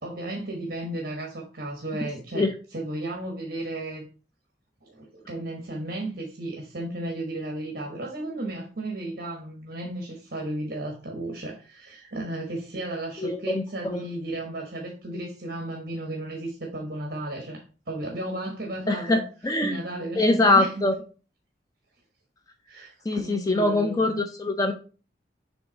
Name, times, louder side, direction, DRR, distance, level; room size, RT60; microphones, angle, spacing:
voice 1, 0.0-4.1 4.8-17.6 17.9-19.2 19.6-20.9 22.7-24.2, right 1 dB, 55° right, 1.2 m, -34 dB
voice 2, 13.2-14.0 18.9-19.8 20.2-20.9 23.1-24.7, left 2 dB, 20° left, 0.4 m, -23 dB
7.0 x 3.5 x 3.9 m
head